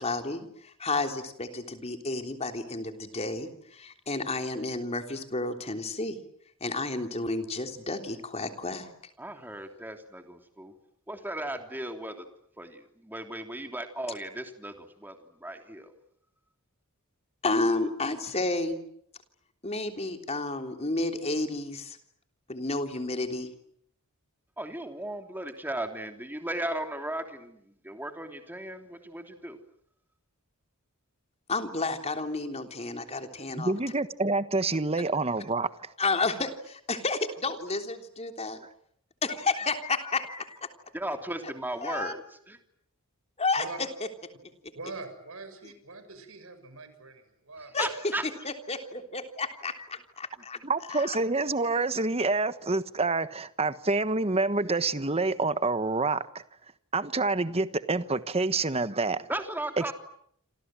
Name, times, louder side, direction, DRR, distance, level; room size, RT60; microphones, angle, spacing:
voice 1, 0.0-6.2 6.6-8.9 17.4-18.8 19.6-22.0 22.5-23.5 31.5-33.7 36.0-38.6 39.2-40.7 41.8-42.1 43.4-43.9 47.7-47.9 48.2-50.6 50.9-51.2, left 3 dB, 30° left, 6 dB, 3.4 m, -31 dB
voice 2, 9.2-10.7 11.1-12.2 12.6-15.1 15.4-15.9 24.6-29.6 40.9-42.6 47.8-48.2 59.3-59.9, right 1 dB, 10° right, 5 dB, 3.2 m, -36 dB
voice 3, 33.6-35.7 50.6-56.2 56.9-59.3 59.8-59.9, right 3 dB, 25° right, 13 dB, 1.3 m, -27 dB
voice 4, 44.7-47.8, right 3 dB, 65° right, 9 dB, 6.6 m, -43 dB
28.0 x 27.5 x 7.7 m, 0.70 s
head